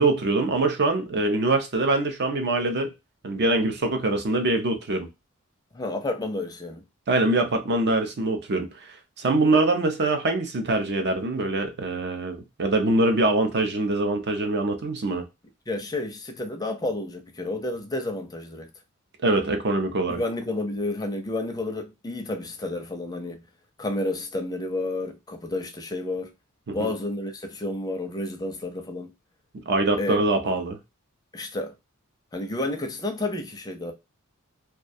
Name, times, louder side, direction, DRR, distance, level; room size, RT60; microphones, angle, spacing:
voice 1, 0.0-2.9 3.2-5.1 7.1-15.2 19.2-20.2 26.7-26.9 29.7-30.8, right 2 dB, 50° right, 0.6 m, -24 dB
voice 2, 5.7-6.8 15.7-18.7 20.1-23.4 23.8-26.3 26.7-29.1 30.0-30.2 31.3-31.7 32.3-33.9, left 2 dB, 20° left, 0.5 m, -30 dB
2.3 x 2.2 x 2.6 m
head